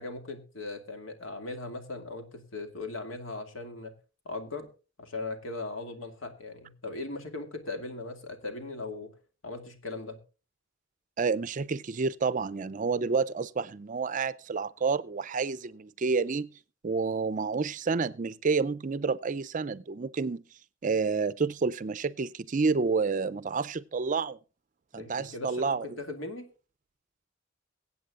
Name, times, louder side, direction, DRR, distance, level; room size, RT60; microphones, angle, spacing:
voice 1, 0.0-3.9 4.3-4.7 5.0-9.1 9.4-10.2 25.0-26.5, left 2 dB, 85° left, 2.2 m, -38 dB
voice 2, 11.2-16.5 16.8-20.4 20.8-24.4 24.9-26.0, right 4 dB, 40° right, 0.5 m, -29 dB
23.0 x 8.4 x 2.4 m
head